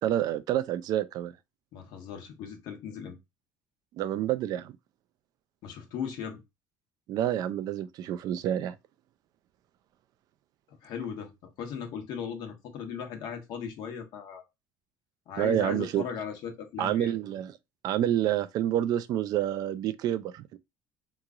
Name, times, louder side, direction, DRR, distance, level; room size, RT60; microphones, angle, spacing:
voice 1, 0.0-1.3 4.0-4.7 7.1-8.8 15.4-16.0 16.8-17.6 17.8-20.6, right 11 dB, 55° right, 0.4 m, -28 dB
voice 2, 1.7-3.1 5.6-6.4 10.7-14.4 15.3-17.1, left 7 dB, 65° left, 1.1 m, -37 dB
3.7 x 3.0 x 2.4 m
cardioid pair, 135°, 8 cm